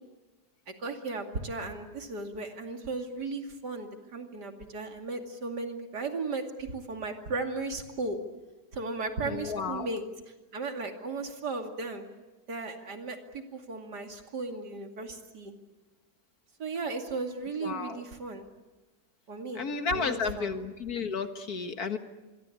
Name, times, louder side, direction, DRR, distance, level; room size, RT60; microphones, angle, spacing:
voice 1, 0.7-8.2 8.7-10.1 10.5-12.1 12.5-15.5 16.6-18.5 19.3-19.6 19.9-20.5, right 3 dB, 80° right, 4 dB, 3.1 m, -36 dB
voice 2, 9.2-9.9 17.6-18.0 19.6-22.0, left 5 dB, 65° left, 8 dB, 2.0 m, -32 dB
26.0 x 23.0 x 8.6 m, 1.1 s
omnidirectional pair, 1.8 m